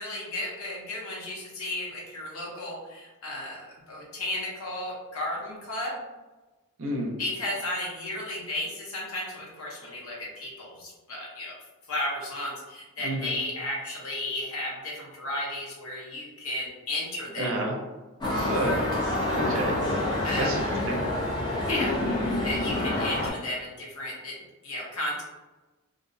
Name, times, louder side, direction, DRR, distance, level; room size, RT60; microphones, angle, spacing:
voice 1, 0.0-6.0 7.2-11.5 11.9-17.5 20.2-20.5 21.6-22.0 22.4-24.4 24.6-25.2, left 1 dB, 70° left, -4 dB, 0.8 m, -34 dB
voice 2, 6.8-7.2 13.0-13.3 17.4-17.7 18.5-18.9 19.3-19.7 20.0-21.0, right 1 dB, 60° right, 0 dB, 0.5 m, -30 dB
sound 1, 18.2-23.3, left 1 dB, 20° left, 0.4 m, -27 dB
2.5 x 2.1 x 2.5 m, 1.2 s
head